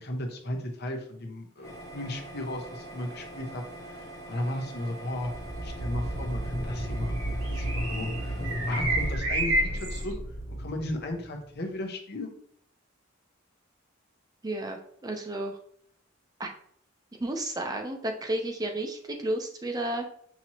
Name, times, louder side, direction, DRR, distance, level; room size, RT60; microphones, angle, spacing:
voice 1, 0.0-5.3 5.6-10.1 10.6-12.3, left 1 dB, 50° left, 3 dB, 0.8 m, -35 dB
sound 1, 1.6-9.1, right 1 dB, 15° left, 0.9 m, -44 dB
sound 2, 1.6-10.1, right 1 dB, 70° right, 1.2 m, -33 dB
sound 3, 5.3-11.5, equal, 80° left, 1.1 m, -33 dB
voice 2, 14.4-15.6 16.4-16.5 17.2-20.1, right 1 dB, 20° right, 3 dB, 0.5 m, -32 dB
5.9 x 2.9 x 2.9 m, 0.65 s
head